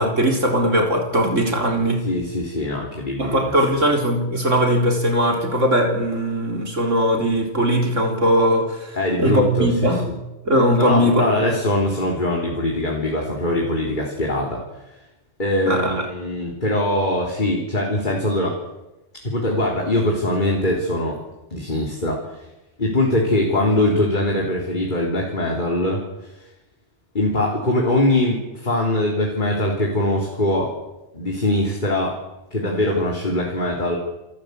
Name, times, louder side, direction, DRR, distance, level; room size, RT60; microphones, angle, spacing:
voice 1, 0.0-2.1 3.2-10.1 10.4-11.5 15.7-16.1 27.7-27.8, equal, 80° right, 3 dB, 4.2 m, -20 dB
voice 2, 2.0-3.5 3.8-3.9 9.0-9.7 10.0-10.1 10.8-14.6 15.4-18.6 19.2-21.2 21.5-22.5 22.8-26.4 27.1-30.7 31.1-32.1 32.5-34.0, left 1 dB, 40° left, -1 dB, 3.8 m, -22 dB
27.5 x 15.5 x 8.3 m, 1.0 s
omnidirectional pair, 1.3 m